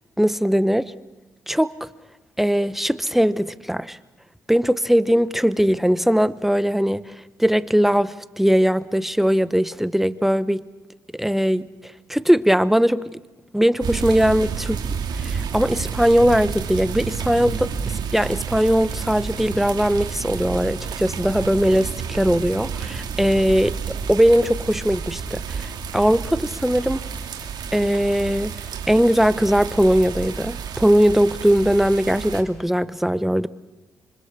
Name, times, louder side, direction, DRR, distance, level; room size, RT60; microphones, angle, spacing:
voice 1, 0.2-0.9 1.5-1.7 2.4-4.0 4.5-7.0 7.4-10.6 11.1-11.7 12.1-13.0 13.5-14.8 15.2-17.7 18.1-27.0 27.7-28.6 28.9-33.5, equal, 5° right, 16 dB, 1.0 m, -20 dB
sound 1, 13.8-32.4, right 6 dB, 70° right, 2.6 m, -30 dB
25.5 x 24.5 x 6.8 m, 1.1 s
supercardioid pair, 60°, 8 cm